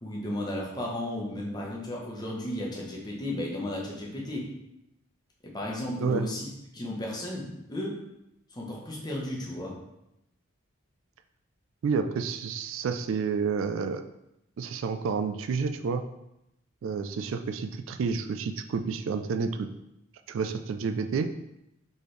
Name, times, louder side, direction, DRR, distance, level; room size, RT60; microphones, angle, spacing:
voice 1, 0.0-4.5 5.4-8.0 8.5-9.8, left 1 dB, 20° left, -3 dB, 0.9 m, -34 dB
voice 2, 11.8-14.0 14.6-16.0 16.8-19.7 20.3-21.3, right 5 dB, 75° right, 8 dB, 0.3 m, -29 dB
4.2 x 3.4 x 3.2 m, 0.85 s
head